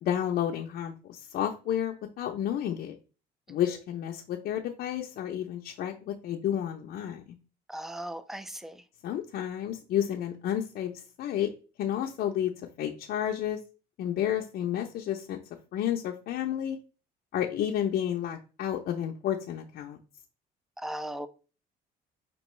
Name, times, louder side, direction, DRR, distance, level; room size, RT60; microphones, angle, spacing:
voice 1, 0.0-3.0 3.5-7.2 9.0-11.5 11.8-13.6 14.0-15.4 15.7-16.8 17.3-20.0, left 10 dB, 65° left, 0 dB, 0.5 m, -31 dB
voice 2, 7.7-8.8 20.8-21.3, right 1 dB, ahead, 12 dB, 0.4 m, -37 dB
5.3 x 2.9 x 3.1 m, 0.34 s
cardioid pair, 110°, 17 cm